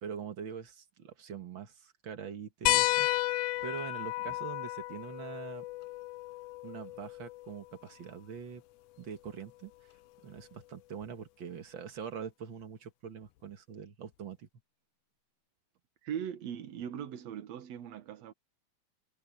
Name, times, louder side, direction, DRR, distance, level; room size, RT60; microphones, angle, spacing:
voice 1, 0.0-3.1 3.6-5.7 6.6-8.6 9.0-9.7 10.2-14.5, right 7 dB, 50° right, 1.9 m, -43 dB
sound 1, 2.7-7.7 9.3-9.4 11.0-11.1, left 17 dB, 85° left, 2.1 m, -32 dB
voice 2, 16.0-18.3, right 9 dB, 65° right, 2.3 m, -40 dB
omnidirectional pair, 3.4 m